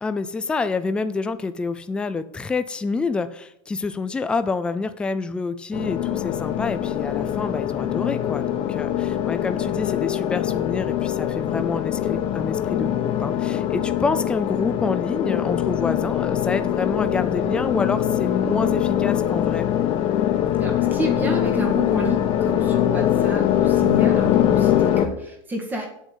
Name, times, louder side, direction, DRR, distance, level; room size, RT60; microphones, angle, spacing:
voice 1, 0.0-19.7, left 4 dB, 5° left, 11 dB, 0.4 m, -27 dB
sound 1, 5.7-25.1, left 11 dB, 35° left, 1.0 m, -23 dB
voice 2, 20.6-25.9, right 1 dB, 10° right, 2 dB, 1.8 m, -30 dB
8.0 x 6.4 x 8.2 m, 0.76 s
supercardioid pair, 165°, 16 cm